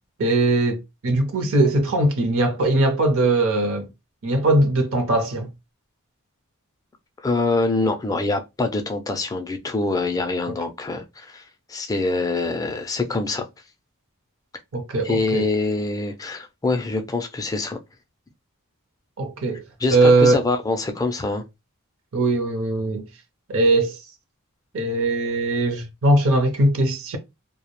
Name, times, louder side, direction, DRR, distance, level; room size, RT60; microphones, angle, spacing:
voice 1, 0.2-3.9 4.2-5.5 10.5-10.6 14.7-15.5 19.2-19.6 19.9-20.4 22.1-23.1 23.5-24.0 24.7-27.2, right 2 dB, 65° right, 0.6 m, -20 dB
voice 2, 7.2-11.4 11.7-13.5 15.0-17.8 19.8-21.4, left 3 dB, 15° left, 0.3 m, -24 dB
2.3 x 2.0 x 2.9 m
head